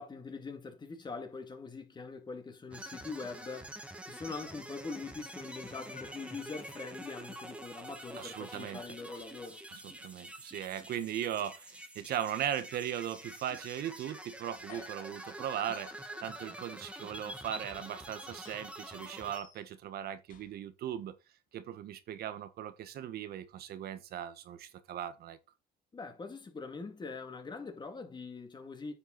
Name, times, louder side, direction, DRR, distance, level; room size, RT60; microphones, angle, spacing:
voice 1, 0.0-9.6 25.9-28.9, left 4 dB, 25° left, 2.5 m, -43 dB
sound 1, 2.7-19.4, right 1 dB, 5° right, 2.0 m, -47 dB
In the kitchen, 4.3-4.6 4.9-6.3 6.7-6.9 8.7-9.5 9.9-10.5 11.9-12.1 13.5-13.8 14.5-16.2 16.8-16.9 17.7-18.7 19.2-19.9 20.3-21.0, left 7 dB, 50° left, 2.2 m, -59 dB
voice 2, 8.2-8.8 9.7-21.1 21.5-25.4, right 10 dB, 65° right, 1.5 m, -38 dB
9.8 x 6.2 x 4.2 m
cardioid pair, 110°, 17 cm